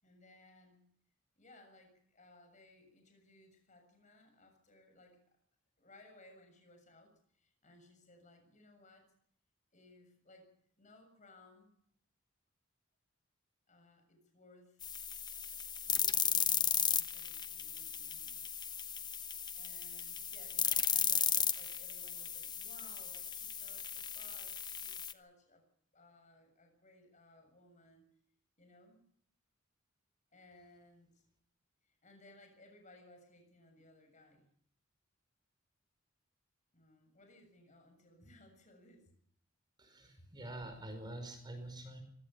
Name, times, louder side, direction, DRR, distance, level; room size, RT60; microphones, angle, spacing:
voice 1, 0.0-0.9 1.4-5.2 5.8-9.1 9.7-10.5 10.8-11.7 13.7-14.8 15.4-18.4 19.5-25.7 25.9-28.1 28.6-29.0 30.3-31.2 31.8-34.5 36.7-39.1 40.2-40.3, left 2 dB, 40° left, 5 dB, 7.0 m, -62 dB
sound 1, 14.8-25.1, left 7 dB, 20° left, 1.0 m, -35 dB
voice 2, 39.8-42.0, right 1 dB, 20° right, 6 dB, 5.3 m, -46 dB
25.0 x 16.5 x 7.0 m, 0.65 s
head